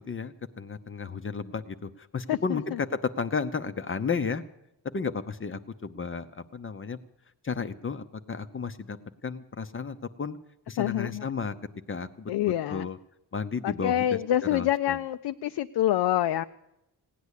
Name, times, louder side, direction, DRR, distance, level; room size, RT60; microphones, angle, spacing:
voice 1, 0.0-4.4 4.9-7.0 7.4-9.0 9.2-10.4 10.7-11.5 11.9-13.0 13.3-14.2 14.5-15.0, left 5 dB, 30° left, 10 dB, 0.6 m, -33 dB
voice 2, 2.3-2.6 10.8-11.3 12.3-12.9 13.6-16.4, left 12 dB, 70° left, 10 dB, 0.5 m, -26 dB
17.0 x 9.6 x 8.2 m, 0.89 s
wide cardioid pair, 140°, 41 cm